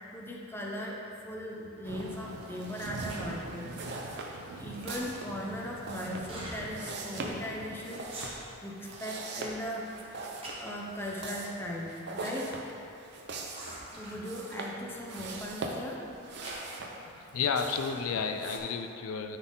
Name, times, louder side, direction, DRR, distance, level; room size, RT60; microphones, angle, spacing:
voice 1, 0.0-3.7 4.6-9.9 10.6-12.5 14.0-16.0, equal, 10° left, -2 dB, 0.7 m, -38 dB
Thunder / Rain, 1.8-7.8, right 3 dB, 90° right, 0.5 m, -44 dB
sound 1, 2.5-18.6, right 2 dB, 55° right, 0.7 m, -42 dB
sound 2, 3.0-3.3 3.8-4.2 4.5-5.3 6.2-6.6 7.1-7.2 7.4-7.6 8.0-8.7 9.1-9.6 9.9-11.0 11.7-12.3 12.6-12.7 13.5-14.3 15.2-15.5 15.9-16.8, right 1 dB, 25° right, 1.3 m, -45 dB
voice 2, 17.1-19.4, left 6 dB, 85° left, 6 dB, 0.4 m, -32 dB
9.5 x 4.1 x 3.8 m, 2.6 s
head